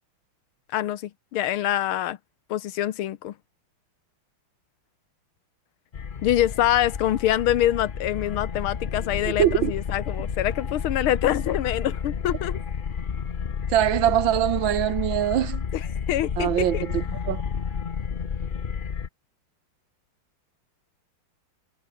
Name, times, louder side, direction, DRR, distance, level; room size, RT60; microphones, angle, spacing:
voice 1, 0.7-2.2 2.5-3.4 6.2-12.6 15.7-16.9, left 12 dB, 90° left, 1.8 m, -25 dB
sound 1, 5.9-19.1, left 6 dB, 70° left, 0.4 m, -31 dB
voice 2, 9.2-9.7 13.7-15.6 16.4-17.4, right 11 dB, 70° right, 1.6 m, -23 dB
omnidirectional pair, 2.3 m